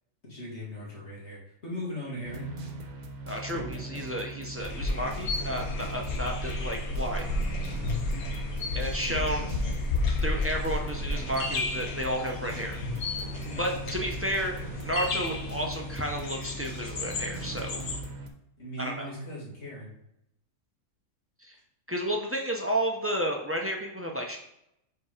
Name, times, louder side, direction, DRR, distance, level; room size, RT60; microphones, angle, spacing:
voice 1, 0.2-2.7 4.1-4.2 8.1-8.3 13.4-13.6 18.6-19.9, equal, 50° left, -5 dB, 2.3 m, -39 dB
sound 1, 2.2-18.3, right 2 dB, 75° right, 1.3 m, -40 dB
voice 2, 3.3-7.2 8.7-9.5 10.1-12.8 13.6-14.5 14.8-17.8 18.8-19.1 21.4-21.5 21.9-24.4, equal, 15° right, 1 dB, 0.5 m, -32 dB
sound 2, 4.6-18.0, left 3 dB, 85° left, 1.4 m, -32 dB
4.6 x 4.4 x 4.9 m, 0.81 s
omnidirectional pair, 1.5 m